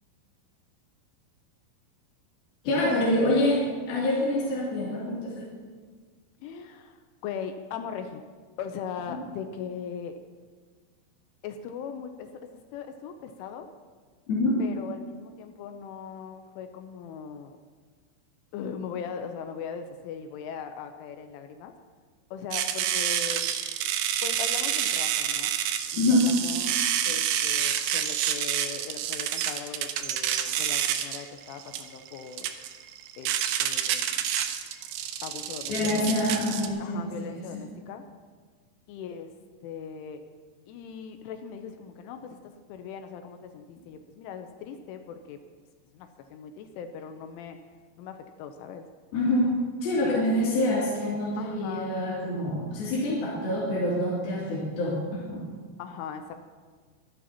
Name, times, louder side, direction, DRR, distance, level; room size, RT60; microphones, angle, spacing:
voice 1, 2.6-5.4 14.3-14.5 26.0-26.3 35.7-37.6 49.1-55.4, left 1 dB, 50° left, -8 dB, 4.3 m, -26 dB
voice 2, 6.4-8.2 8.6-10.1 11.4-13.7 14.6-17.6 18.5-21.7 22.3-23.4 24.2-25.5 25.9-26.8 27.1-32.5 33.2-33.3 33.6-34.2 35.2-36.1 36.8-38.0 38.9-39.3 39.6-40.2 40.7-45.4 45.9-47.6 48.0-48.9 50.0-50.3 50.5-50.8 51.4-52.0 55.8-56.4, left 7 dB, 80° left, 6 dB, 3.0 m, -39 dB
sound 1, 22.5-36.7, right 10 dB, 85° right, 2.4 m, -28 dB
24.5 x 11.0 x 2.9 m, 1.5 s
omnidirectional pair, 5.9 m